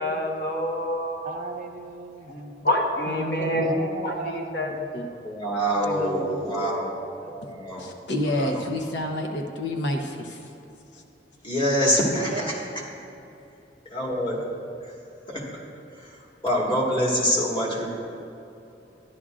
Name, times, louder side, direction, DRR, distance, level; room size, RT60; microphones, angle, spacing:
voice 1, 0.0-1.3 2.3-3.7 4.0-4.7 5.7-6.4, left 1 dB, 60° left, 0 dB, 1.1 m, -28 dB
voice 2, 1.2-2.5 3.4-4.9 5.9-6.8 7.2-7.3 12.3-12.5, right 3 dB, 45° right, 5 dB, 0.6 m, -36 dB
voice 3, 3.1-3.6 4.9-5.1 7.8-10.5 10.9-11.0, left 1 dB, 75° left, 3 dB, 0.8 m, -29 dB
voice 4, 5.2-6.9 7.3-7.9 8.4-8.6 11.4-12.5 13.9-14.4 14.8-14.9 15.3-15.6 16.0-16.2 16.4-17.9, equal, 25° left, -4 dB, 1.7 m, -25 dB
12.5 x 10.5 x 2.5 m, 2.8 s
head